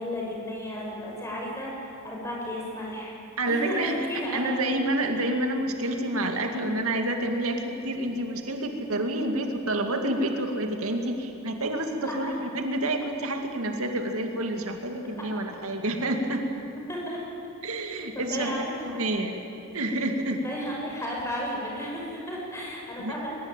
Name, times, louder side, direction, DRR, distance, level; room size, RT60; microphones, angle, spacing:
voice 1, 0.0-3.1 3.4-4.6 12.0-12.4 16.9-17.2 18.1-19.0 20.4-23.3, equal, 15° left, -3 dB, 6.3 m, -33 dB
voice 2, 3.4-4.0 4.3-16.4 17.6-18.5 18.9-19.3 19.7-20.4 23.0-23.1, right 1 dB, 80° right, 4 dB, 2.3 m, -28 dB
22.0 x 20.5 x 9.0 m, 2.9 s
head